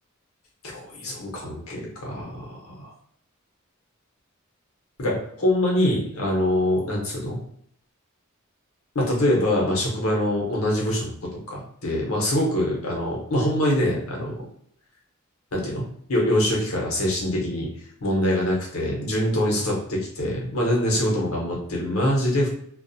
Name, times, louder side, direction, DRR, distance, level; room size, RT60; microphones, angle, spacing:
voice 1, 0.6-2.9 5.0-7.4 8.9-11.1 11.5-14.4 15.5-15.8 16.1-17.7 18.0-22.5, left 1 dB, 75° left, -2 dB, 0.8 m, -24 dB
2.3 x 2.0 x 2.6 m, 0.66 s
head